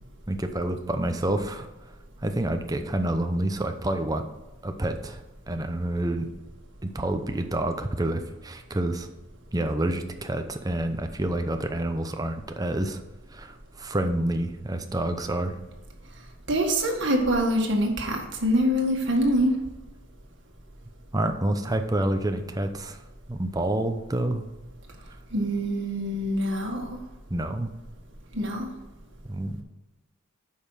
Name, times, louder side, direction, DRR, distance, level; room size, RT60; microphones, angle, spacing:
voice 1, 0.3-1.9 2.2-4.3 4.6-5.2 5.5-6.3 6.8-9.1 9.5-13.0 13.3-15.6 21.1-23.0 23.3-24.4 27.3-27.7 29.2-29.6, right 1 dB, 15° right, 6 dB, 0.7 m, -28 dB
voice 2, 16.5-19.5 25.3-27.0 28.3-28.7, equal, 60° right, 1 dB, 1.8 m, -25 dB
8.6 x 5.6 x 6.4 m, 1.1 s
head